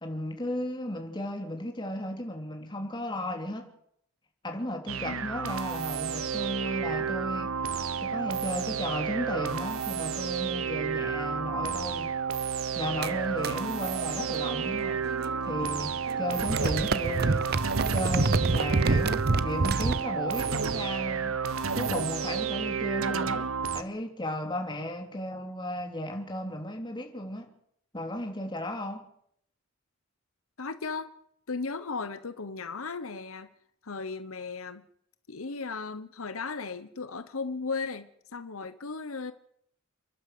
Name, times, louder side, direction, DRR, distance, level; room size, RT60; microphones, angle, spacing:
voice 1, 0.0-3.7 4.4-7.6 8.0-12.1 12.8-15.1 15.4-17.5 17.9-21.4 21.7-27.5 27.9-29.1, left 1 dB, 20° left, 3.3 m, -35 dB
sound 1, 4.9-23.8, right 6 dB, 80° right, 1.1 m, -31 dB
sound 2, 13.0-15.7 15.9-20.0, right 3 dB, 50° right, 0.7 m, -29 dB
voice 2, 30.6-31.1 31.5-33.5 33.8-34.8 35.3-39.3, left 4 dB, 85° left, 1.1 m, -36 dB
29.5 x 11.5 x 7.9 m
head